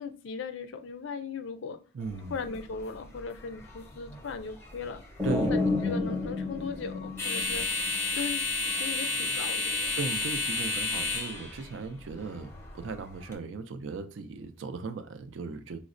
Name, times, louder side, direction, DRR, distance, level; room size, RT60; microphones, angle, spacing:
voice 1, 0.0-1.8 2.3-5.0 5.5-7.7 8.1-9.9, left 5 dB, 60° left, 0.4 m, -38 dB
voice 2, 1.9-2.3 5.2-5.6 9.9-15.8, right 4 dB, 65° right, 0.4 m, -37 dB
sound 1, 2.0-13.3, left 3 dB, 10° left, 0.6 m, -33 dB
sound 2, 5.2-8.0, left 3 dB, 15° right, 0.8 m, -30 dB
4.9 x 2.1 x 2.5 m
head